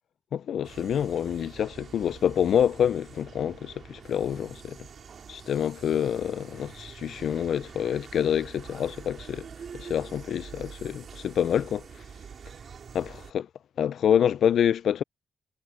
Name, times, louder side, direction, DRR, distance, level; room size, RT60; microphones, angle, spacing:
voice 1, 0.3-4.8 5.3-9.5 9.8-11.8 12.9-13.5 13.8-15.0, left 9 dB, 70° left, 0.4 m, -27 dB
sound 1, 0.6-13.3, right 6 dB, 50° right, 2.7 m, -46 dB
wide cardioid pair, 155°, 0 cm